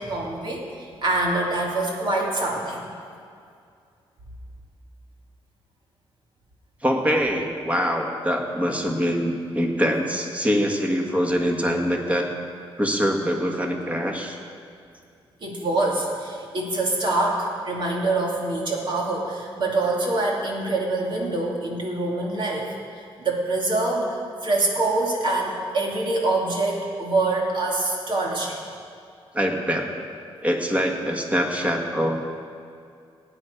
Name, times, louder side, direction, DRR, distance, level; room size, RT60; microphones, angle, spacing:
voice 1, 0.0-2.9 15.4-28.6, right 2 dB, 55° right, -2 dB, 2.7 m, -25 dB
voice 2, 6.8-12.3 12.8-14.4 29.3-30.1 30.4-32.2, equal, 15° right, 2 dB, 1.7 m, -24 dB
18.0 x 9.2 x 5.1 m, 2.4 s
cardioid pair, 105°, 10 cm